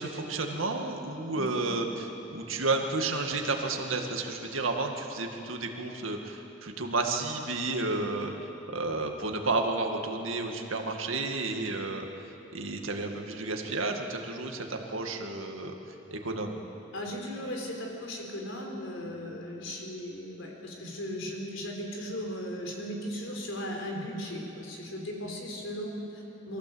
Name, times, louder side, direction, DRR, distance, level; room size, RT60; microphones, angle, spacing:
voice 1, 0.0-12.1 12.5-15.7 16.1-16.6, right 3 dB, 85° right, 3 dB, 2.1 m, -31 dB
voice 2, 16.9-26.6, equal, 75° left, 0 dB, 4.2 m, -37 dB
23.5 x 15.5 x 8.0 m, 3.0 s
head